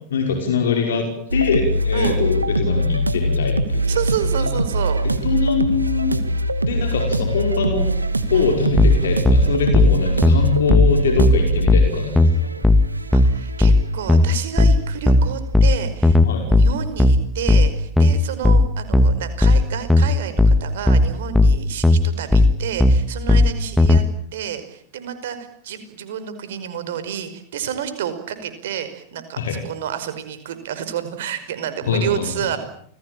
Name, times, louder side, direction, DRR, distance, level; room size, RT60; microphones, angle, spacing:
voice 1, 0.0-3.8 4.4-4.5 5.0-6.2 6.6-7.9 8.3-12.5 16.2-16.5 29.4-29.6 31.9-32.3, left 5 dB, 65° left, 4 dB, 5.6 m, -23 dB
sound 1, 1.3-14.0, right 1 dB, 80° right, 2.1 m, -23 dB
voice 2, 3.9-5.0 8.3-8.5 13.1-16.2 16.5-24.0 24.3-25.4 25.6-32.6, right 9 dB, 55° right, 11 dB, 5.3 m, -29 dB
sound 2, 8.8-24.0, left 2 dB, 5° left, 2.2 m, -15 dB
29.5 x 21.0 x 9.0 m, 0.65 s
figure-of-eight pair, 90°, 0 cm